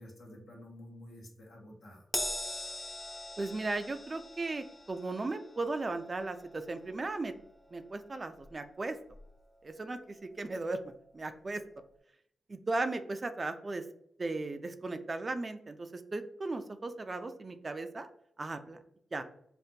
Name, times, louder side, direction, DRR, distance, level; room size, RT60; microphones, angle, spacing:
voice 1, 0.0-2.0, left 1 dB, 70° left, -2 dB, 1.0 m, -50 dB
Crash cymbal, 2.1-8.8 9.1-9.3 10.4-10.5, left 1 dB, 10° left, 0.6 m, -42 dB
voice 2, 3.4-7.3 7.7-9.0 9.6-11.6 12.5-13.8 14.2-18.1 18.4-18.8 19.1-19.2, right 2 dB, 40° right, 8 dB, 0.4 m, -36 dB
3.5 x 2.4 x 2.8 m, 0.71 s
supercardioid pair, 50°, 0 cm